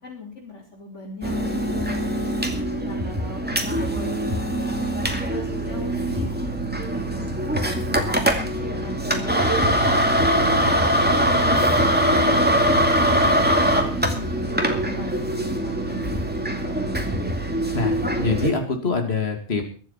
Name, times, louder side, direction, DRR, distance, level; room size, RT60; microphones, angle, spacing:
voice 1, 0.0-2.3 2.8-4.7 5.3-6.3 6.6-7.3 7.5-7.9 8.4-9.7 10.1-12.8 13.2-16.8, left 2 dB, 75° left, -5 dB, 4.6 m, -40 dB
sound 1, 1.2-18.5, equal, 10° right, 2.3 m, -22 dB
voice 2, 17.7-19.6, left 4 dB, 60° left, 4 dB, 2.8 m, -24 dB
23.0 x 7.8 x 5.7 m, 0.40 s
omnidirectional pair, 1.2 m